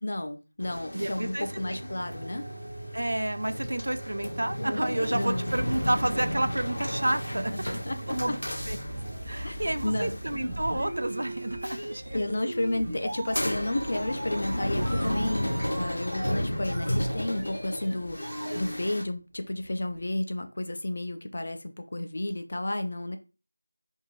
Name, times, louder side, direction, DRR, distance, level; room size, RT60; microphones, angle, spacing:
voice 1, 0.0-2.5 5.1-5.4 7.5-7.6 7.8-8.4 9.4-10.1 12.1-23.2, left 1 dB, 45° left, 7 dB, 0.4 m, -32 dB
sound 1, 0.6-19.0, equal, 75° left, 0.7 m, -34 dB
voice 2, 0.9-1.8 2.9-7.5 8.1-8.4 8.7-8.8 9.3-12.2, right 1 dB, 65° right, 11 dB, 0.4 m, -30 dB
sound 2, 1.4-18.7, right 1 dB, 15° right, 0.6 m, -40 dB
sound 3, 2.6-4.3 4.6-4.8 5.3-20.1, right 1 dB, 35° right, 0.9 m, -43 dB
2.6 x 2.5 x 2.9 m, 0.32 s
figure-of-eight pair, 175°, 0 cm